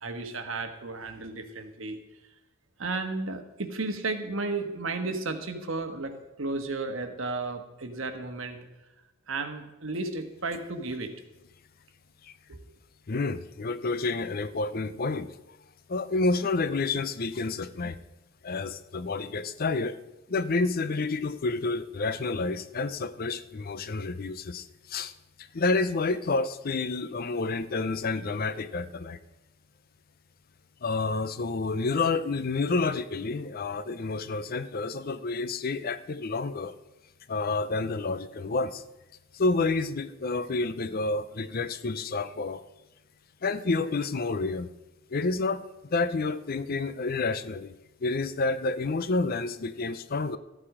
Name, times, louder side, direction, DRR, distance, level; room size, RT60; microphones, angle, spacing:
voice 1, 0.0-2.0 2.8-8.6 9.3-11.1 12.5-12.6, right 3 dB, 70° right, 6 dB, 1.3 m, -33 dB
voice 2, 13.1-15.3 15.9-18.0 18.4-20.0 20.3-25.1 25.5-29.2 30.8-36.7 37.3-38.8 39.3-42.6 43.4-44.7 45.1-45.6 45.9-47.7 48.0-50.4, left 3 dB, 45° left, 14 dB, 0.5 m, -29 dB
13.5 x 8.6 x 4.9 m, 1.0 s
head